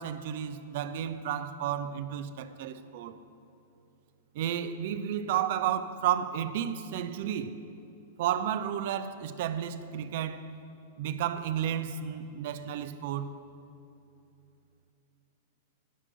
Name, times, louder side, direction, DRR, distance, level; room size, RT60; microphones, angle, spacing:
voice 1, 0.0-3.2 4.3-7.6 8.2-10.5 11.0-13.3, right 10 dB, 55° right, 0.7 m, -32 dB
16.5 x 6.1 x 7.9 m
figure-of-eight pair, 100°, 0 cm